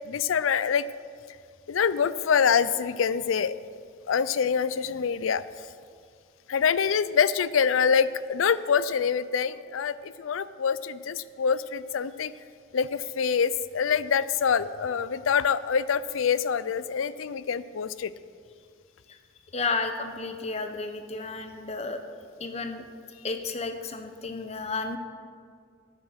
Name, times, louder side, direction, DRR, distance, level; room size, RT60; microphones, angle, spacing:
voice 1, 0.1-0.8 1.7-3.6 4.1-5.4 6.5-12.3 12.7-18.1, left 6 dB, 90° left, 16 dB, 0.5 m, -25 dB
voice 2, 19.5-22.0 22.4-22.8 23.2-25.0, left 3 dB, 35° left, 7 dB, 0.8 m, -32 dB
11.0 x 9.2 x 6.5 m, 2.2 s
head